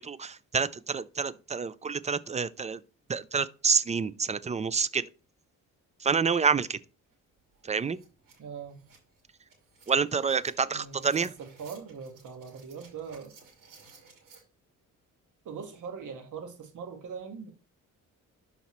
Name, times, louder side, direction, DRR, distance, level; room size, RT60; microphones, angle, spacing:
voice 1, 0.0-2.8 3.1-5.1 6.0-6.8 7.6-8.0 9.9-11.3, right 5 dB, 20° right, 0.4 m, -28 dB
sound 1, 7.1-7.2 7.5-14.4, right 5 dB, 85° right, 2.8 m, -57 dB
voice 2, 8.4-8.8 10.7-13.3 15.4-17.5, right 6 dB, 70° right, 1.7 m, -41 dB
11.5 x 4.2 x 3.1 m
cardioid pair, 100°, 32 cm